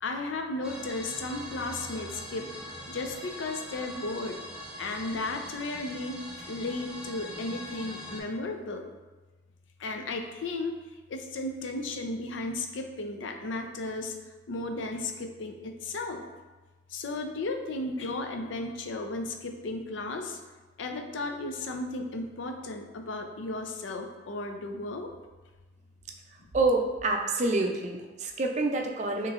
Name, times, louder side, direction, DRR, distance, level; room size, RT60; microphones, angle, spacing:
voice 1, 0.0-2.5 2.9-4.4 4.8-8.9 9.8-10.8 11.1-14.1 14.5-16.2 16.9-20.4 20.8-25.1, left 2 dB, 85° left, 4 dB, 0.5 m, -34 dB
sound 1, 0.6-8.2, equal, 5° right, 0.7 m, -42 dB
voice 2, 26.5-29.3, right 2 dB, 35° right, 2 dB, 0.4 m, -27 dB
6.0 x 3.0 x 2.4 m, 1.2 s
head